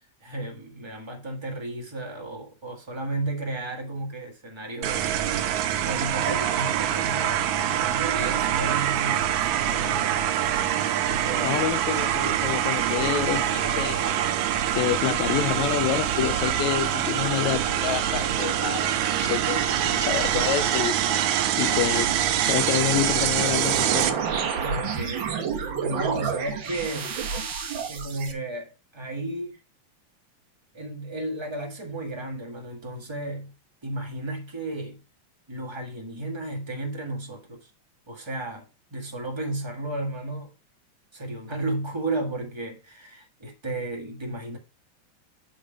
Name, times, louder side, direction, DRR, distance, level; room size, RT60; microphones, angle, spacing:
voice 1, 0.2-5.1 5.8-10.3 11.0-11.6 24.5-27.2 27.9-29.6 30.7-33.5 33.8-35.0 35.5-37.7 38.1-40.5 41.1-44.6, right 2 dB, 40° right, 0.4 m, -33 dB
sound 1, 4.8-24.1, right 10 dB, 85° right, 2.1 m, -25 dB
voice 2, 11.4-14.2 14.7-21.3 21.6-22.1 22.5-24.2, left 13 dB, 80° left, 1.8 m, -28 dB
sound 2, 23.3-28.3, right 6 dB, 65° right, 1.2 m, -30 dB
8.5 x 3.9 x 4.9 m
omnidirectional pair, 3.3 m